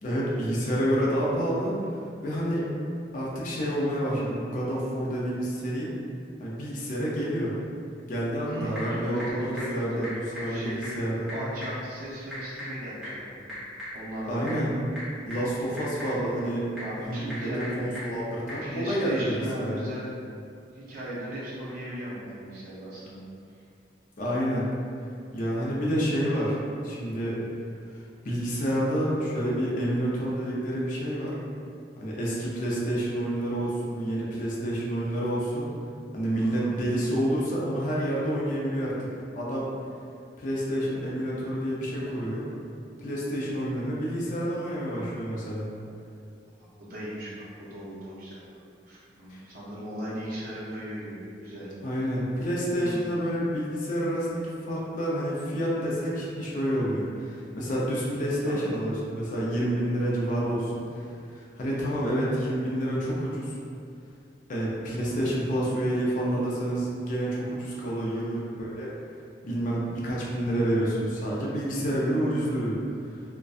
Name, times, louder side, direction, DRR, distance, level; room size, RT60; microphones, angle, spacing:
voice 1, 0.0-1.8 2.2-2.7 3.1-5.9 6.4-7.5 8.1-11.3 14.3-14.7 15.3-16.6 17.0-17.5 17.8-19.8 24.2-24.7 25.3-26.6 26.8-27.4 28.2-31.3 32.0-35.7 36.1-39.1 39.4-39.7 40.4-42.5 43.0-45.7 49.3-49.4 51.8-61.0 61.3-63.5 64.5-68.9 69.4-72.8, equal, 45° left, -6 dB, 0.4 m, -28 dB
Typing / Telephone, 8.2-18.7, left 1 dB, ahead, 0.9 m, -41 dB
voice 2, 8.5-10.1 10.5-10.9 11.3-13.5 13.9-14.6 16.8-17.8 18.6-20.2 20.7-23.2 36.3-36.8 46.8-48.4 48.9-51.7 52.8-53.0 58.4-58.7 68.1-68.4, equal, 55° right, -8 dB, 0.5 m, -37 dB
2.5 x 2.2 x 2.3 m, 2.4 s
head